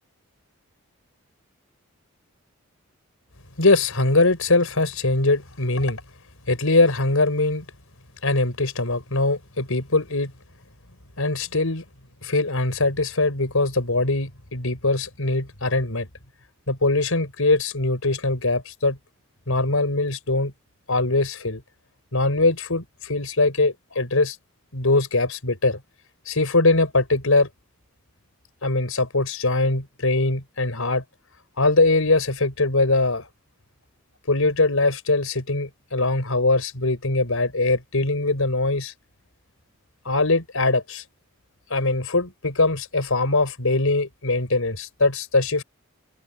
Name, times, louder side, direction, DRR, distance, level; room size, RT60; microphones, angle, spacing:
voice 1, 3.6-6.0 6.5-7.6 8.2-10.3 11.2-11.8 12.2-16.1 16.7-19.0 19.5-20.5 20.9-21.6 22.1-24.4 24.7-25.8 26.3-27.5 28.6-31.0 31.6-33.3 34.3-38.9 40.0-41.0 41.7-45.6, left 2 dB, 75° left, 4.6 m, -22 dB
open air
head